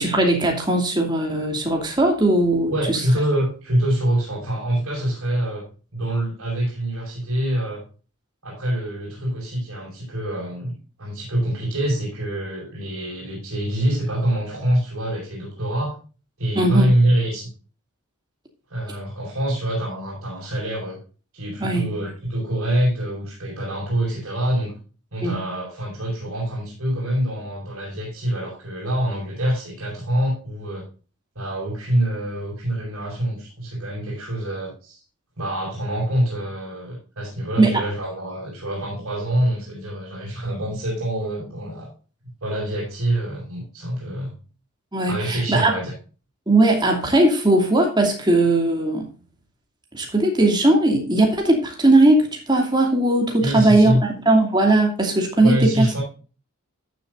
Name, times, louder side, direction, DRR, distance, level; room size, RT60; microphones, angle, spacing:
voice 1, 0.0-3.0 16.5-16.9 21.6-21.9 25.2-25.4 37.6-37.8 44.9-45.8 46.5-49.0 49.9-55.9, right 2 dB, 20° right, 2 dB, 2.5 m, -18 dB
voice 2, 2.7-5.6 5.9-7.8 8.4-16.0 16.4-17.5 18.7-21.0 21.3-24.7 25.1-30.9 31.4-35.0 35.4-41.9 42.4-44.3 45.1-45.9 53.4-54.0 55.4-56.0, right 1 dB, 65° right, -6 dB, 5.6 m, -25 dB
14.0 x 7.5 x 2.6 m, 0.35 s
head